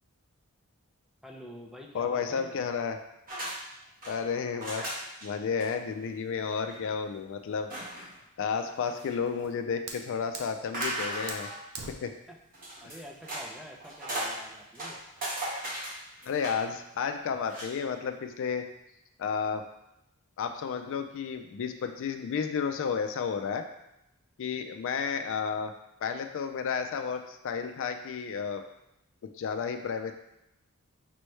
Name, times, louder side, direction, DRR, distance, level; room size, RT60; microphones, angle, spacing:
voice 1, 1.2-2.6 12.3-12.4 12.8-15.0, equal, ahead, 0 dB, 0.4 m, -47 dB
voice 2, 1.9-3.0 4.1-8.1 8.4-11.5 11.9-12.1 12.8-12.9 16.2-18.7 19.2-19.7 20.4-23.6 24.4-25.7 26.0-28.6 29.2-30.1, left 6 dB, 60° left, 7 dB, 0.3 m, -32 dB
sound 1, 3.3-3.6 3.8-4.1 4.6-5.3 5.6-5.7 6.0-6.1 6.5-6.8 7.7-8.2 8.6-9.4 10.7-11.6 12.5-13.5 13.8-14.4 14.7-16.7 17.4-17.7, right 1 dB, 40° right, 1.2 m, -36 dB
Fire, 9.2-15.2, right 4 dB, 80° right, 0.6 m, -46 dB
5.3 x 3.1 x 3.2 m, 0.85 s
head